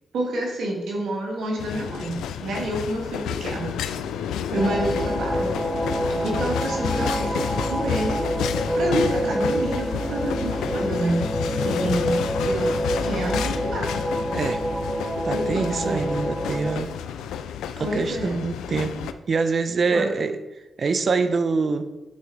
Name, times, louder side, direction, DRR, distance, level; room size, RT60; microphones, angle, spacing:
voice 1, 0.1-3.8 4.5-5.6 6.2-8.2 8.7-11.2 11.6-12.2 12.4-13.9 15.3-16.1 17.8-18.4 19.9-20.1, right 1 dB, 80° right, -1 dB, 1.9 m, -28 dB
sound 1, 1.6-19.1, left 8 dB, 90° left, 0.3 m, -31 dB
sound 2, 4.5-16.8, equal, 15° right, 1.0 m, -27 dB
voice 2, 15.2-16.9 17.8-18.9 19.3-20.4 20.8-21.9, right 4 dB, 55° right, 10 dB, 0.6 m, -25 dB
8.6 x 4.5 x 3.9 m, 1.0 s
supercardioid pair, 50°, 0 cm